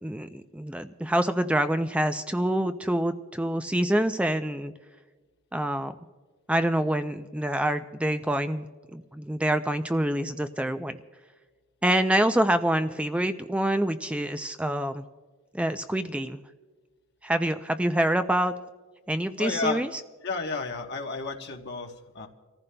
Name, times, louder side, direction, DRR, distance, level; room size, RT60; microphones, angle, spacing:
voice 1, 0.0-4.7 5.5-6.0 6.5-8.7 8.9-11.0 11.8-15.0 15.5-16.4 17.2-18.5 19.1-19.9, right 1 dB, 5° right, 9 dB, 0.3 m, -26 dB
voice 2, 19.4-19.8 20.2-22.3, left 3 dB, 50° left, 3 dB, 1.0 m, -32 dB
29.0 x 14.5 x 2.2 m, 1.4 s
head